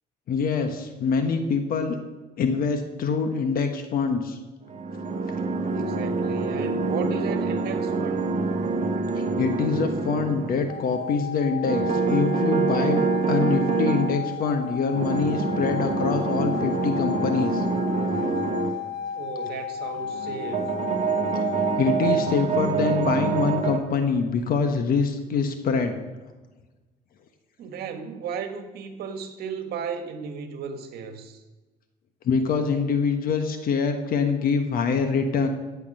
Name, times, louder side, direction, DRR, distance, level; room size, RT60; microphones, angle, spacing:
voice 1, 0.3-2.0 2.4-4.4 9.2-17.6 21.3-25.9 32.2-35.5, left 5 dB, 60° left, 6 dB, 1.3 m, -25 dB
sound 1, 4.7-10.8 11.6-14.2 14.9-18.7 20.0-23.8, right 4 dB, 45° right, 1.6 m, -26 dB
voice 2, 5.7-8.4 19.1-20.7 27.6-31.4, right 6 dB, 70° right, 7 dB, 1.6 m, -35 dB
sound 2, 10.7-22.4, left 8 dB, 85° left, 1.3 m, -34 dB
15.0 x 8.5 x 5.5 m, 1.2 s
cardioid pair, 110°, 17 cm